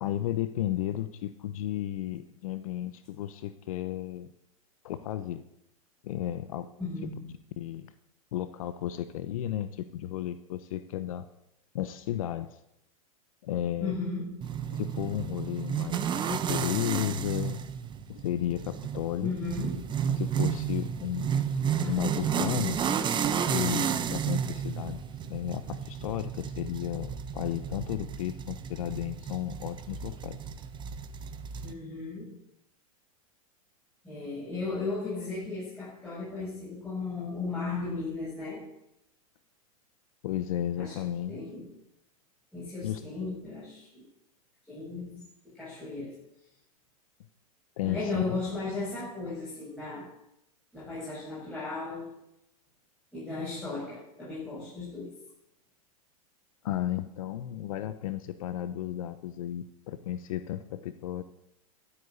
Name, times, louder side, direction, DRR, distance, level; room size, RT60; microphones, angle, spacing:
voice 1, 0.0-4.3 4.8-5.4 6.0-6.7 7.6-7.9 8.3-11.3 11.7-12.6 13.4-14.0 14.7-17.6 18.1-19.3 20.2-21.4 21.8-22.8 23.5-25.0 25.3-30.4 40.2-41.4 42.8-43.0 47.8-48.4 56.6-61.2, left 12 dB, 70° left, 12 dB, 1.0 m, -33 dB
voice 2, 6.8-7.3 13.8-14.4 19.2-19.8 21.8-22.1 31.6-32.3 34.0-38.6 40.8-40.9 41.3-41.7 42.5-44.0 44.7-45.2 45.5-46.2 47.8-50.1 50.7-52.2 53.1-55.1, left 3 dB, 5° left, -10 dB, 7.9 m, -36 dB
sound 1, 14.4-31.7, right 8 dB, 25° right, 1.1 m, -32 dB
12.5 x 8.5 x 9.5 m, 0.82 s
hypercardioid pair, 115°, 19 cm